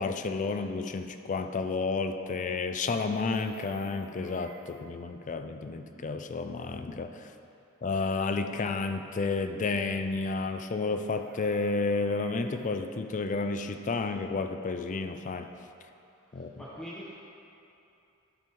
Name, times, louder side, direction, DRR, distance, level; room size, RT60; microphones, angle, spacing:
voice 1, 0.0-7.3 7.8-15.5 16.3-16.7, left 3 dB, 35° left, 7 dB, 0.4 m, -31 dB
Chicken rooster, 3.1-4.9 11.0-12.8 15.0-15.1 15.4-15.6, right 3 dB, 55° right, 0.6 m, -50 dB
voice 2, 16.3-17.1, equal, 5° left, -9 dB, 0.9 m, -43 dB
12.0 x 5.3 x 4.6 m, 2.8 s
head